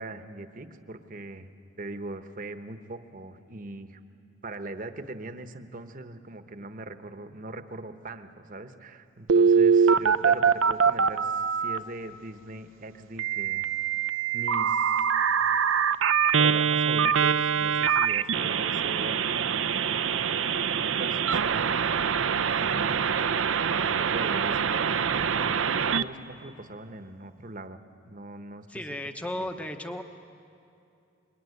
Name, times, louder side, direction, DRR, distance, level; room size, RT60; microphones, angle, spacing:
voice 1, 0.0-1.5 1.8-4.0 4.4-13.7 14.3-15.0 16.4-19.6 20.7-23.1 24.0-27.8 28.1-29.0 29.3-29.5, right 2 dB, 40° right, 9 dB, 1.1 m, -41 dB
Telephone, 9.3-11.8 13.2-26.0, right 6 dB, 85° right, 0.7 m, -24 dB
voice 2, 28.7-30.0, left 1 dB, 5° left, 6 dB, 0.9 m, -34 dB
26.0 x 22.0 x 9.6 m, 2.7 s
head